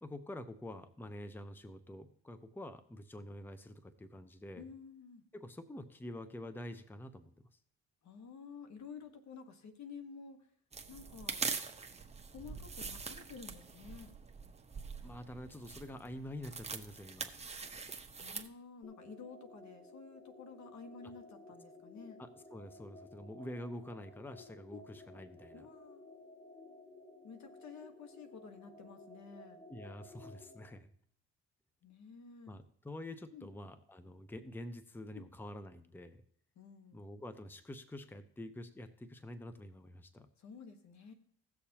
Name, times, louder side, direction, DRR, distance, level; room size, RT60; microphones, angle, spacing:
voice 1, 0.0-4.7 5.3-7.3 15.0-17.3 22.2-25.7 29.7-30.9 32.5-36.2 36.9-40.3, left 1 dB, 5° left, 10 dB, 0.8 m, -47 dB
voice 2, 4.6-5.2 8.0-10.5 10.9-11.5 12.3-14.1 18.2-22.2 24.7-24.8 25.5-26.1 27.2-29.7 31.8-32.6 33.3-33.5 35.1-35.2 36.5-37.0 40.4-41.1, left 5 dB, 65° left, 7 dB, 1.5 m, -51 dB
sound 1, 10.7-18.5, right 4 dB, 20° right, 1.0 m, -43 dB
sound 2, 18.8-30.7, left 2 dB, 35° left, 5.1 m, -55 dB
17.0 x 6.7 x 2.9 m, 0.62 s
cardioid pair, 90°, 30 cm